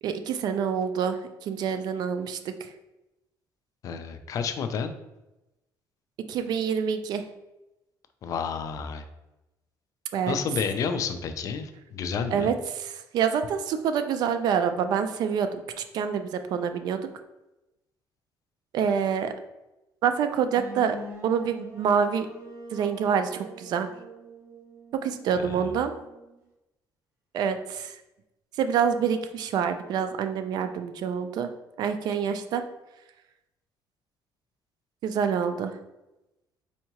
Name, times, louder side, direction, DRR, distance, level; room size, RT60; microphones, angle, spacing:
voice 1, 0.0-2.7 6.3-7.2 10.1-10.4 12.3-17.1 18.7-19.3 20.0-22.3 22.7-23.9 25.0-25.9 27.3-28.0 28.6-31.5 31.8-32.6 35.0-35.7, right 7 dB, 60° right, 9 dB, 0.3 m, -27 dB
voice 2, 3.8-4.9 8.2-9.0 10.3-12.5 25.4-25.7, left 6 dB, 45° left, 8 dB, 0.3 m, -30 dB
sound 1, 20.5-26.4, equal, 35° right, 1.3 m, -45 dB
4.4 x 2.7 x 2.9 m, 0.97 s
cardioid pair, 150°, 8 cm